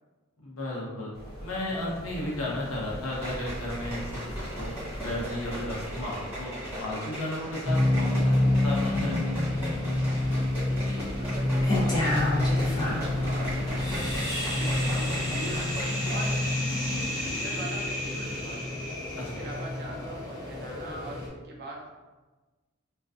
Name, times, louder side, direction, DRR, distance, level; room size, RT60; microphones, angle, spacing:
voice 1, 0.4-1.1 1.4-4.1 4.6-4.7 5.0-6.5 6.8-8.3 8.6-9.1 9.4-9.6 19.1-19.4, left 1 dB, 70° left, -5 dB, 0.8 m, -34 dB
sound 1, 1.1-15.7, equal, 50° left, 1.0 m, -41 dB
sound 2, 3.1-16.4 16.7-16.8, equal, 10° right, 1.1 m, -39 dB
sound 3, 7.7-21.3, left 1 dB, 20° left, 0.6 m, -28 dB
voice 2, 10.8-18.9 19.2-21.9, right 1 dB, 50° right, -1 dB, 0.5 m, -42 dB
2.4 x 2.2 x 2.4 m, 1.2 s
head